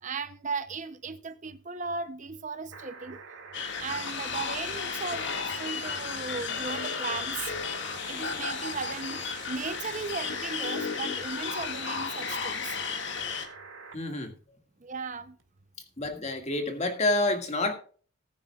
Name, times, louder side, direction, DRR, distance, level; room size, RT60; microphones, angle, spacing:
voice 1, 0.0-3.2 3.8-7.5 8.1-12.8 14.8-15.4, right 4 dB, 35° right, 0.6 m, -36 dB
sound 1, 2.7-14.0 15.4-15.5, right 5 dB, 65° right, 1.9 m, -46 dB
sound 2, 3.5-13.5, left 5 dB, 55° left, 1.9 m, -34 dB
voice 2, 13.9-14.3 16.0-17.7, left 2 dB, 30° left, 1.9 m, -28 dB
19.0 x 9.6 x 2.3 m
head